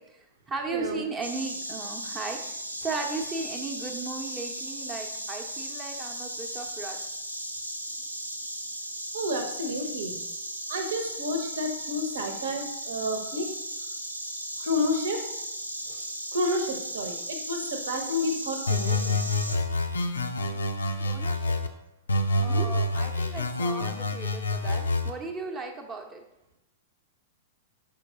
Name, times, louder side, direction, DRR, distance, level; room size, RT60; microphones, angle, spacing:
voice 1, 0.1-7.0 21.0-21.6 22.4-26.2, right 4 dB, 20° right, 3 dB, 0.8 m, -36 dB
voice 2, 0.7-1.0 9.1-10.2 10.7-13.5 14.6-15.2 15.9-19.1 22.4-22.7, left 1 dB, 60° right, 5 dB, 1.0 m, -30 dB
Insect, 1.2-19.6, right 1 dB, 85° right, 0.6 m, -36 dB
sound 1, 18.7-21.7 22.1-25.1, left 2 dB, 75° left, 0.5 m, -27 dB
5.9 x 5.3 x 3.6 m, 0.86 s
figure-of-eight pair, 100°, 0 cm